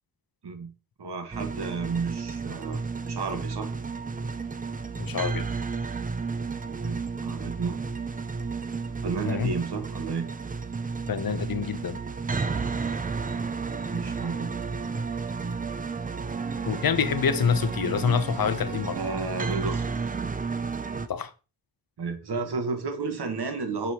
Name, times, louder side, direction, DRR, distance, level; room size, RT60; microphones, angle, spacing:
voice 1, 1.0-3.7 6.7-7.8 9.0-10.3 13.9-14.5 18.9-19.9 22.0-23.9, right 4 dB, 85° right, 1.3 m, -32 dB
sound 1, 1.3-21.1, right 4 dB, 20° right, 0.4 m, -32 dB
voice 2, 5.0-5.5 9.3-9.5 11.1-12.0 16.7-19.0 21.1-21.3, left 7 dB, 65° left, 0.7 m, -26 dB
7.0 x 4.7 x 2.9 m
wide cardioid pair, 90°, 39 cm